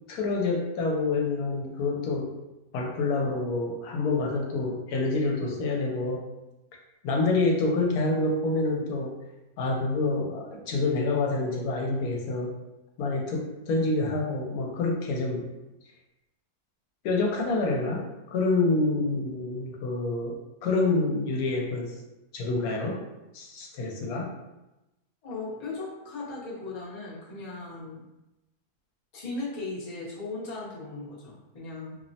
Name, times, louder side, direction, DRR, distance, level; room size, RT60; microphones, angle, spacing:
voice 1, 0.1-2.3 2.7-6.2 7.0-9.1 9.6-12.5 13.0-15.4 17.0-18.0 18.3-20.4 20.6-21.9 22.3-23.0 23.3-24.3, left 3 dB, 75° left, 0 dB, 1.0 m, -27 dB
voice 2, 25.2-28.0 29.1-32.0, left 3 dB, 45° left, -6 dB, 0.5 m, -37 dB
2.9 x 2.0 x 2.6 m, 0.98 s
omnidirectional pair, 1.7 m